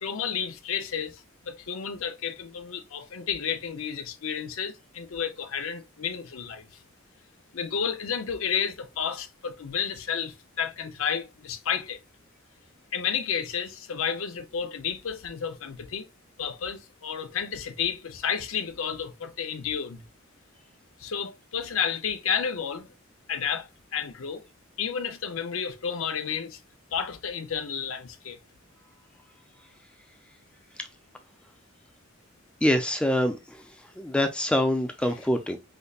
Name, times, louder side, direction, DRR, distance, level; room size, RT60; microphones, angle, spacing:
voice 1, 0.0-6.7 7.5-12.0 12.9-16.1 16.4-20.0 21.0-22.9 23.3-24.5 24.8-26.6 26.9-28.4, left 7 dB, 80° left, 0.6 m, -31 dB
voice 2, 32.6-33.4 34.0-35.6, left 1 dB, 5° left, 0.4 m, -24 dB
5.1 x 2.1 x 2.3 m
head